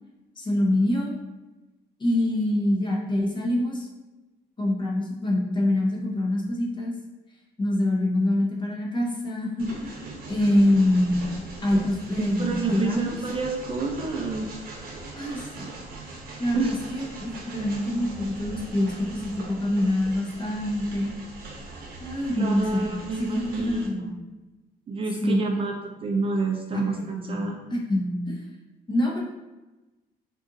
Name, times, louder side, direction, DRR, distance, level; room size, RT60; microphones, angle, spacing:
voice 1, 0.4-1.1 2.0-3.9 4.6-6.9 7.6-9.9 10.3-11.2 11.6-13.1 15.2-15.7 16.0-21.1 22.0-22.9 23.2-24.0 25.2-25.4 27.0-27.4 27.7-28.4 28.9-29.2, left 1 dB, 30° left, -2 dB, 0.8 m, -25 dB
Train, 9.6-23.9, right 2 dB, 60° right, 0.8 m, -41 dB
voice 2, 12.4-14.5 16.5-16.8 22.3-24.1 24.9-27.6, right 3 dB, 35° right, 1 dB, 0.4 m, -28 dB
2.7 x 2.5 x 3.8 m, 1.1 s
cardioid pair, 110°, 17 cm